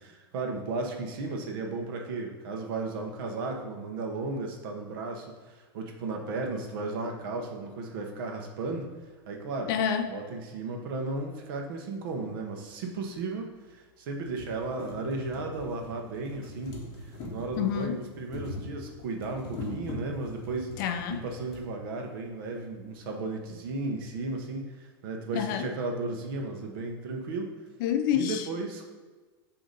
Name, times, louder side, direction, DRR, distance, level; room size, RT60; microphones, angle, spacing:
voice 1, 0.0-8.9 9.3-9.7 10.1-16.8 17.3-20.7 21.1-27.5 28.1-28.9, right 3 dB, 60° right, 2 dB, 0.9 m, -35 dB
voice 2, 9.7-10.1 17.6-18.0 20.8-21.2 25.3-25.7 27.8-28.5, left 9 dB, 55° left, 8 dB, 0.5 m, -28 dB
sound 1, 12.1-12.2 13.2-13.3 13.7-13.8 14.1-21.7 22.6-22.7 22.9-23.0, left 2 dB, 30° left, 1.2 m, -42 dB
6.4 x 2.9 x 5.2 m, 1.3 s
supercardioid pair, 155°, 13 cm